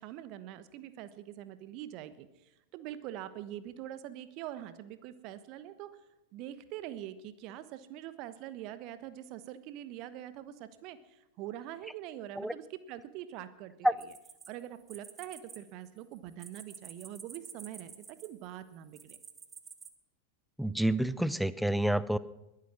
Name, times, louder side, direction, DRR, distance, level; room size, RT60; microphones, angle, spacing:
voice 1, 0.0-6.0 6.3-13.9 14.5-19.2, right 12 dB, 40° right, 13 dB, 1.2 m, -44 dB
sound 1, 14.0-15.6 15.8-18.4 18.9-19.9, right 6 dB, 20° right, 1.4 m, -50 dB
voice 2, 20.6-22.2, right 1 dB, ahead, 17 dB, 0.6 m, -28 dB
21.5 x 11.0 x 6.1 m, 0.96 s
figure-of-eight pair, 90°, 0 cm